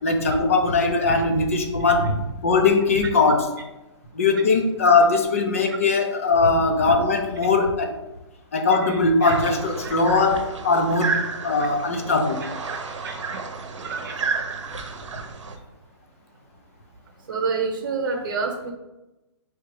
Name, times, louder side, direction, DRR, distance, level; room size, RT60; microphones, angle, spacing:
voice 1, 0.0-3.5 4.1-8.0 8.5-12.4, left 3 dB, 30° left, 4 dB, 0.4 m, -20 dB
voice 2, 8.8-9.3 9.8-9.9 11.1-11.2 12.4-12.5 13.0-13.1 13.8-14.1 17.3-18.7, right 4 dB, 45° right, 3 dB, 1.0 m, -28 dB
sound 1, 9.2-15.6, right 4 dB, 90° right, 0.7 m, -31 dB
4.8 x 3.2 x 3.0 m, 0.99 s
hypercardioid pair, 175°, 15 cm